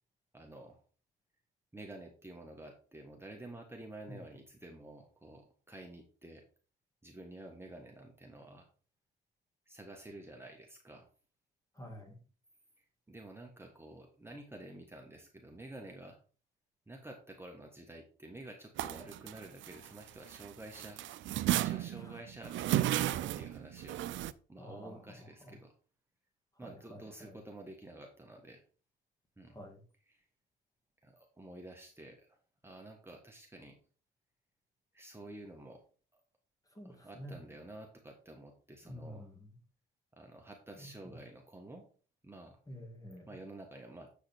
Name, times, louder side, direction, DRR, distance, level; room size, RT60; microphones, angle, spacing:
voice 1, 0.3-0.8 1.7-6.4 7.0-8.7 9.7-11.1 13.1-16.2 16.9-21.0 21.5-24.1 24.5-25.7 26.6-28.6 29.4-29.6 30.1-30.2 31.0-32.4 32.6-33.8 34.9-35.8 36.1-36.2 36.8-39.3 40.1-41.8 42.2-42.6 43.3-44.1, right 1 dB, 10° right, 1.5 m, -50 dB
voice 2, 11.8-12.2 22.0-22.2 24.6-25.5 26.6-27.4 29.5-29.8 36.7-37.4 38.8-39.5 40.8-41.2 42.7-43.3, equal, 15° left, 2.2 m, -49 dB
sound 1, 18.8-20.5 20.7-24.3, right 14 dB, 75° right, 0.5 m, -33 dB
8.0 x 5.0 x 4.5 m
cardioid pair, 90°, 20 cm